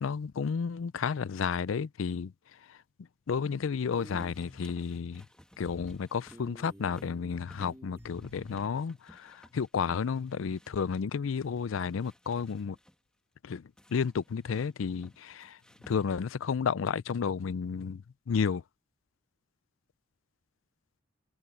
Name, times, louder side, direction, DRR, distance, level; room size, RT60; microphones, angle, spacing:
voice 1, 0.0-2.3 2.7-2.8 3.3-5.2 5.6-12.8 13.4-15.6 15.9-18.6, left 6 dB, 80° left, 0.4 m, -32 dB
sound 1, 3.9-11.0 11.4-13.0 13.8-16.4, equal, 5° left, 2.0 m, -57 dB
sound 2, 3.9-4.6 5.6-6.0 6.3-8.6, equal, 15° right, 2.6 m, -50 dB
head